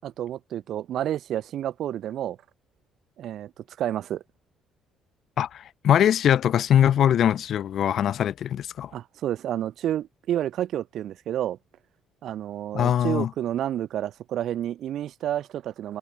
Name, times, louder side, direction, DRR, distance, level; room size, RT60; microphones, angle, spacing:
voice 1, 0.0-2.4 3.2-3.5 3.8-4.2 8.9-11.6 12.2-16.0, right 11 dB, 65° right, 2.3 m, -30 dB
voice 2, 5.4-8.9 12.7-13.3, left 10 dB, 60° left, 1.5 m, -22 dB
cardioid pair, 110°, 0 cm